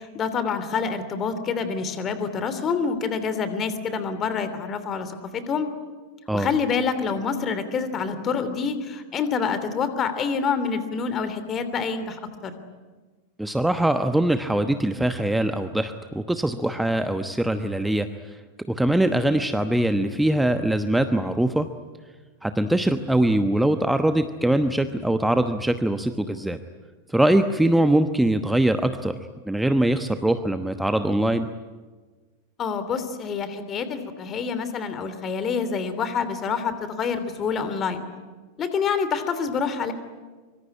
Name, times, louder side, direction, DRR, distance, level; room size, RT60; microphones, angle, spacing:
voice 1, 0.0-5.7 6.3-12.5 32.6-38.0 38.6-39.9, left 5 dB, 25° left, 11 dB, 3.1 m, -27 dB
voice 2, 13.4-18.4 18.7-21.7 22.4-26.6 27.1-29.2 29.5-31.5, right 1 dB, 5° right, 9 dB, 1.1 m, -22 dB
25.0 x 24.5 x 9.8 m, 1.4 s
figure-of-eight pair, 90°, 0 cm